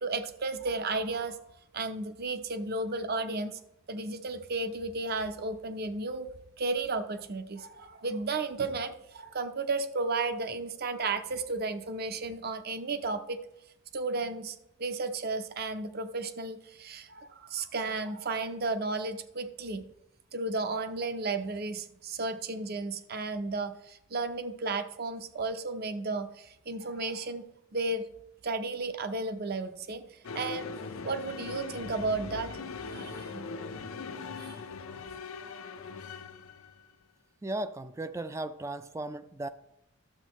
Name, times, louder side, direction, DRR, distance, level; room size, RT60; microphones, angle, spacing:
voice 1, 0.0-1.4 1.7-3.6 3.9-6.3 6.6-13.4 13.9-19.9 20.3-27.4 27.7-28.0 28.4-30.7 31.0-33.5 34.4-34.6 34.9-35.0, right 3 dB, 50° right, 9 dB, 0.6 m, -33 dB
sound 1, 30.2-36.8, left 4 dB, 85° left, 0.6 m, -40 dB
voice 2, 37.4-39.5, right 2 dB, 15° right, 11 dB, 0.3 m, -36 dB
12.0 x 7.6 x 3.1 m, 0.84 s
head